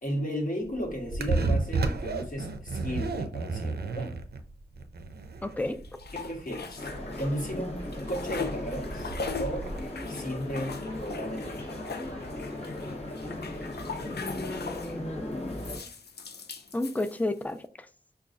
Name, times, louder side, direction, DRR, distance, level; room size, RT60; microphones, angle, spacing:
voice 1, 0.0-4.1 6.1-6.9 7.2-9.7 10.1-12.0, equal, 55° left, 1.1 m, -35 dB
sound 1, 0.6-9.9, right 3 dB, 75° right, 0.4 m, -32 dB
voice 2, 5.4-5.8 14.0-15.5 16.7-17.9, left 2 dB, 10° left, 0.3 m, -33 dB
sound 2, 5.6-7.5 7.8-15.0 15.5-17.5, left 5 dB, 90° left, 0.5 m, -40 dB
sound 3, 6.8-15.8, left 1 dB, 40° left, 0.8 m, -37 dB
5.2 x 2.3 x 2.4 m
wide cardioid pair, 85°, 16 cm